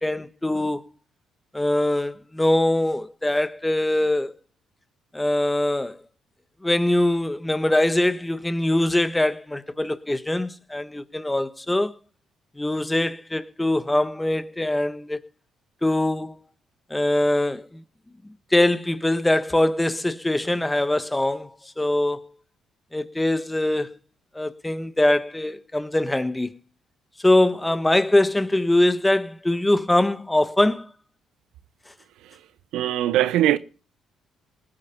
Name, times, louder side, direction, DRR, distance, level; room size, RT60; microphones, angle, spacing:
voice 1, 0.0-0.8 1.5-4.3 5.1-6.0 6.6-11.9 12.6-15.2 15.8-16.3 16.9-17.8 18.5-21.5 21.8-22.2 22.9-23.9 24.3-26.5 27.2-30.9, left 1 dB, 10° left, 1.3 m, -22 dB
voice 2, 32.7-33.6, right 13 dB, 75° right, 0.7 m, -20 dB
19.5 x 8.9 x 5.4 m
hypercardioid pair, 55°, 0 cm